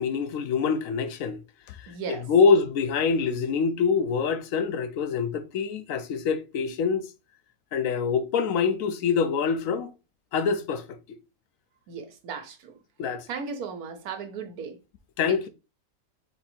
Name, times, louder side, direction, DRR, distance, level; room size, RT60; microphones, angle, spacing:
voice 1, 0.0-1.4 1.8-1.9 2.3-7.1 7.7-9.9 10.3-10.8 13.0-13.3 15.2-15.5, left 5 dB, 70° left, 1.0 m, -25 dB
voice 2, 1.9-2.3 11.9-12.8 13.3-14.8 15.3-15.5, right 5 dB, 85° right, 1.3 m, -36 dB
4.2 x 2.7 x 4.2 m
omnidirectional pair, 1.5 m